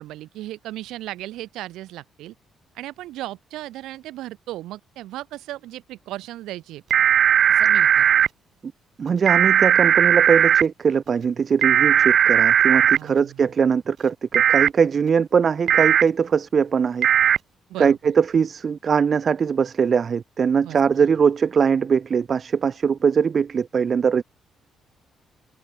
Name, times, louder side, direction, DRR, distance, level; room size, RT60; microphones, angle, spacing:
voice 1, 0.0-2.3 2.8-6.8 7.5-8.1 12.9-13.4 17.7-18.1 20.6-21.1, right 15 dB, 90° right, 1.9 m, -36 dB
sound 1, 6.9-8.3 9.3-10.6 11.6-13.0 14.3-14.7 15.7-16.0 17.0-17.4, right 9 dB, 65° right, 0.8 m, -17 dB
voice 2, 9.0-17.1 17.8-24.2, right 6 dB, 45° right, 2.0 m, -21 dB
cardioid pair, 90°, 0 cm